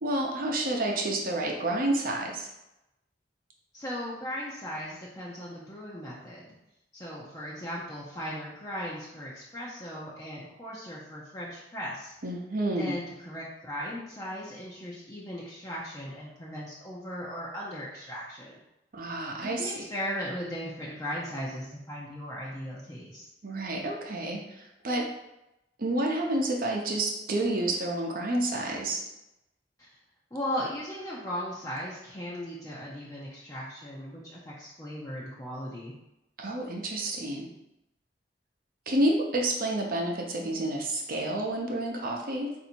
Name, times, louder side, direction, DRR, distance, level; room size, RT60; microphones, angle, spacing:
voice 1, 0.0-2.5 12.2-13.0 18.9-19.7 23.4-25.1 25.8-29.0 36.4-37.5 38.9-42.5, right 1 dB, 55° right, 0 dB, 0.8 m, -29 dB
voice 2, 3.7-6.5 6.9-12.1 12.8-18.6 19.4-23.3 29.8-29.9 30.3-35.9, equal, 20° left, -6 dB, 0.7 m, -37 dB
4.0 x 2.7 x 4.4 m, 0.89 s
head